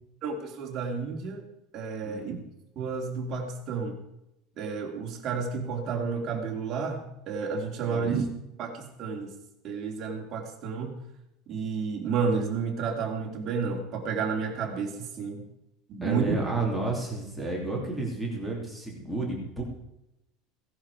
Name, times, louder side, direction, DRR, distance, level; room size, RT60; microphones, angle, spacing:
voice 1, 0.2-1.4 1.7-2.4 2.7-4.0 4.6-8.3 8.6-9.3 9.6-11.0 11.5-15.4 15.9-16.3, right 5 dB, 30° right, 0 dB, 3.0 m, -31 dB
voice 2, 2.0-2.3 7.8-8.1 16.0-19.6, right 2 dB, ahead, -4 dB, 2.9 m, -31 dB
17.0 x 11.0 x 4.9 m, 0.86 s
cardioid pair, 180°, 0 cm